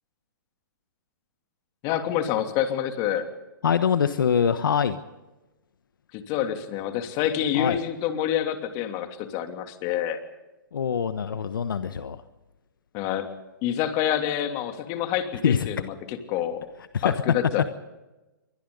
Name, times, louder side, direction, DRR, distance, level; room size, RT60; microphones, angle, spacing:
voice 1, 1.8-3.3 6.1-10.2 12.9-13.3 13.6-16.7 17.0-17.7, left 10 dB, 35° left, 6 dB, 3.0 m, -27 dB
voice 2, 3.6-5.0 7.5-7.8 10.7-12.2 15.4-15.7 16.9-17.1, left 7 dB, 75° left, 11 dB, 1.3 m, -24 dB
28.5 x 23.5 x 4.0 m, 1.1 s
hypercardioid pair, 130°, 11 cm